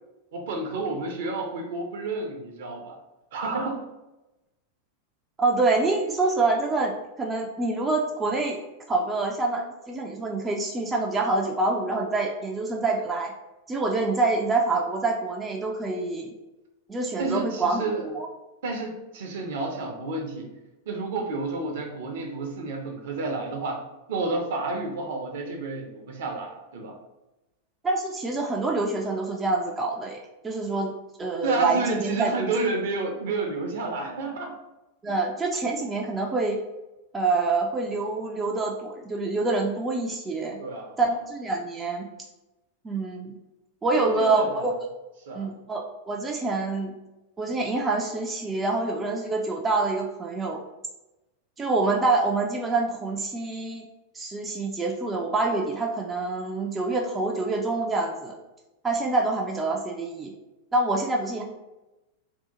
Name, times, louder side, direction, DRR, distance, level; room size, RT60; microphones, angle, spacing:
voice 1, 0.3-3.0 3.3-3.8 17.2-18.0 18.6-20.5 20.9-23.8 24.1-27.0 31.4-34.5 40.6-41.0 44.0-44.5 45.3-45.5, right 3 dB, 55° right, 2 dB, 0.7 m, -30 dB
voice 2, 5.4-8.6 8.9-13.3 13.7-16.3 16.9-18.3 27.8-30.9 31.2-32.5 35.0-36.6 37.1-40.6 41.0-42.1 42.8-43.4 43.8-44.7 45.3-46.9 47.4-50.6 51.6-53.9 54.1-58.4 58.8-60.3 60.7-61.4, right 3 dB, 15° right, 0 dB, 0.4 m, -26 dB
2.7 x 2.4 x 3.6 m, 1.0 s
figure-of-eight pair, 90°, 0 cm